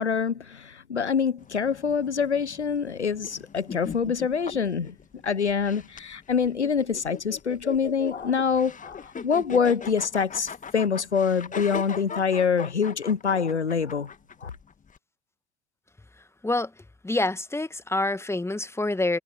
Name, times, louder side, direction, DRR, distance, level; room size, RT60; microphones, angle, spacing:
voice 1, 0.0-4.9 5.2-14.1 14.4-14.5, left 6 dB, 85° left, 1.0 m, -25 dB
sound 1, 1.4-15.0, left 6 dB, 25° left, 2.2 m, -40 dB
voice 2, 17.0-19.2, left 2 dB, 10° left, 1.7 m, -26 dB
figure-of-eight pair, 65°, 33 cm